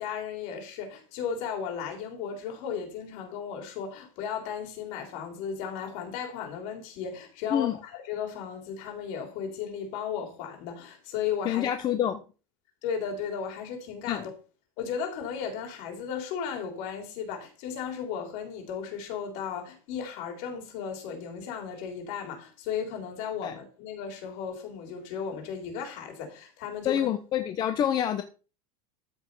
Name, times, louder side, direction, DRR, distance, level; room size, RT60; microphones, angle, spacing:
voice 1, 0.0-11.7 12.8-14.3 14.8-27.1, left 7 dB, 50° left, 3.5 m, -35 dB
voice 2, 11.4-12.2 14.1-14.2 23.4-23.6 26.8-28.2, left 10 dB, 25° left, 0.7 m, -27 dB
13.5 x 5.4 x 5.4 m
supercardioid pair, 170°, 18 cm